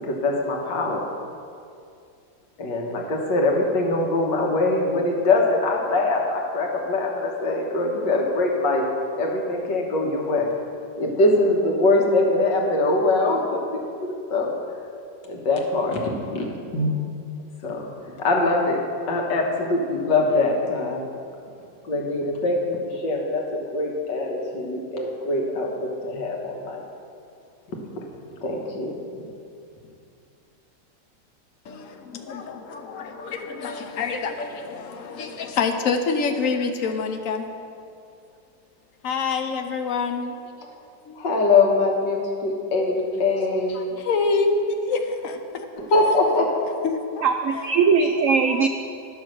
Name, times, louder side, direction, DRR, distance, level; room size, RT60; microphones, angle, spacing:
voice 1, 0.1-1.1 2.6-8.9 9.1-10.5 11.0-14.5 15.2-16.9 17.6-21.0 21.8-26.8 27.7-27.8 28.4-29.3 41.2-43.8 45.8-46.6, left 2 dB, 85° left, 0 dB, 2.0 m, -23 dB
voice 2, 32.3-37.5 39.0-40.4 41.1-41.2 43.7-45.7 46.8-47.2 47.5-47.8 48.4-48.7, left 4 dB, 60° left, 6 dB, 1.0 m, -26 dB
voice 3, 47.2-48.7, right 5 dB, 85° right, 6 dB, 0.6 m, -20 dB
10.5 x 6.3 x 6.5 m, 2.4 s
omnidirectional pair, 1.9 m